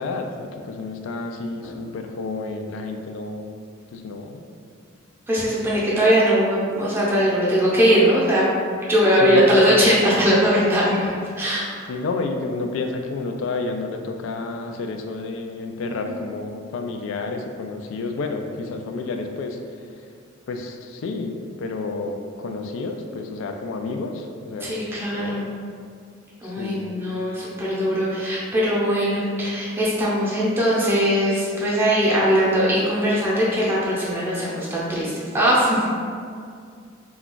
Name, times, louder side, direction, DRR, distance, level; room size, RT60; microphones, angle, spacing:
voice 1, 0.0-3.5 3.9-4.4 9.2-9.9 11.9-19.6 20.5-24.8 25.1-25.4 26.4-26.9, left 3 dB, 70° left, 4 dB, 0.3 m, -30 dB
voice 2, 5.3-8.5 8.9-11.1 11.4-11.6 16.1-16.2 24.6-25.4 26.4-35.9, equal, 10° right, -7 dB, 0.6 m, -20 dB
2.3 x 2.2 x 3.7 m, 2.2 s
head